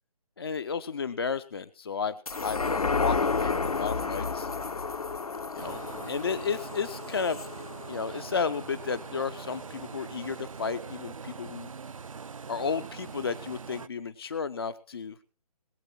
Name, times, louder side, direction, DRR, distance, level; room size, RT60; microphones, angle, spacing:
voice 1, 0.4-4.5 5.5-7.4 7.9-11.7 12.5-15.2, left 5 dB, 40° left, 13 dB, 0.5 m, -33 dB
sound 1, 2.3-9.0 9.5-9.6, left 4 dB, 70° left, 1.0 m, -31 dB
sound 2, 5.6-13.9, right 5 dB, 60° right, 0.5 m, -42 dB
20.5 x 8.0 x 4.4 m, 0.40 s
figure-of-eight pair, 145°, 20 cm